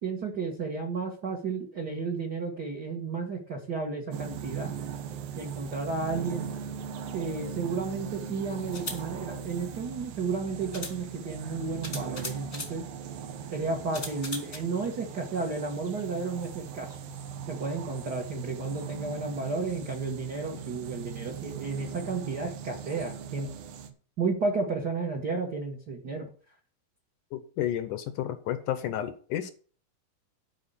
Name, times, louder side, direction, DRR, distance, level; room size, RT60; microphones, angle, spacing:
voice 1, 0.0-4.7 5.3-6.5 7.1-12.8 13.5-17.0 17.5-23.5 24.2-26.3, right 4 dB, 50° right, 1 dB, 1.2 m, -32 dB
sound 1, 4.1-23.9, right 7 dB, 80° right, 2.9 m, -40 dB
sound 2, 7.6-7.7 8.6-9.0 10.2-10.3 10.7-11.0 11.8-12.8 13.9-14.6, left 2 dB, 30° left, 1.1 m, -38 dB
voice 2, 27.3-29.5, left 11 dB, 75° left, 10 dB, 2.0 m, -31 dB
11.5 x 4.9 x 6.8 m, 0.42 s
omnidirectional pair, 4.2 m